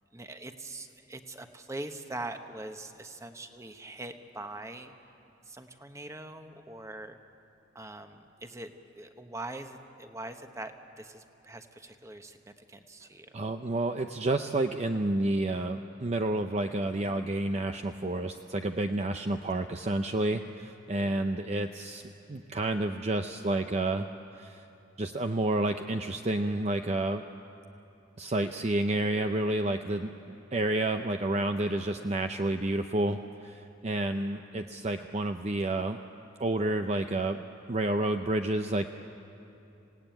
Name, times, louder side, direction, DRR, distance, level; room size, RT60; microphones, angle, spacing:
voice 1, 0.1-4.9 5.4-7.2 7.7-8.7 9.0-13.4, right 2 dB, 15° right, 7 dB, 1.1 m, -42 dB
voice 2, 13.3-24.1 24.3-24.7 25.0-27.2 28.2-36.0 36.4-37.4 37.7-38.9, right 2 dB, 35° right, 6 dB, 0.6 m, -30 dB
27.5 x 17.5 x 9.2 m, 2.8 s
head